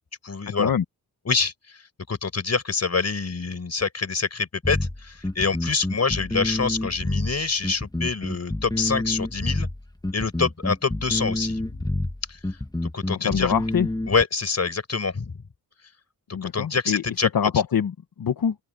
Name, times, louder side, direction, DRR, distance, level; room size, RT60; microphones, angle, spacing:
voice 1, 0.2-0.7 1.3-1.8 2.1-9.7 10.1-11.6 12.3-12.4 12.9-13.5 14.1-15.4 16.4-17.3, left 4 dB, 40° left, 5.8 m, -26 dB
sound 1, 4.6-14.2, left 2 dB, 10° left, 1.4 m, -28 dB
voice 2, 13.2-13.9 16.3-17.0 17.3-18.5, left 8 dB, 65° left, 1.3 m, -24 dB
open air
wide cardioid pair, 135°, 38 cm